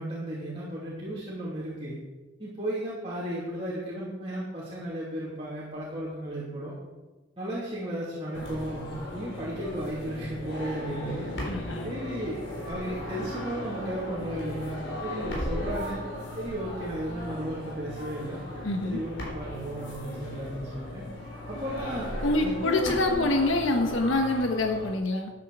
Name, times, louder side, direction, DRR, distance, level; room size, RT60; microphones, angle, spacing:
voice 1, 0.0-2.0 2.4-6.7 7.4-11.3 11.8-16.0 16.4-18.4 18.8-21.0 21.5-22.1 22.4-23.3, right 1 dB, 30° right, -7 dB, 2.8 m, -34 dB
sound 1, 8.3-24.9, left 1 dB, 70° left, 4.2 m, -37 dB
voice 2, 11.5-11.9 18.6-19.0 22.2-25.3, left 2 dB, 90° left, 4 dB, 1.3 m, -26 dB
13.0 x 10.0 x 4.9 m, 1.2 s
head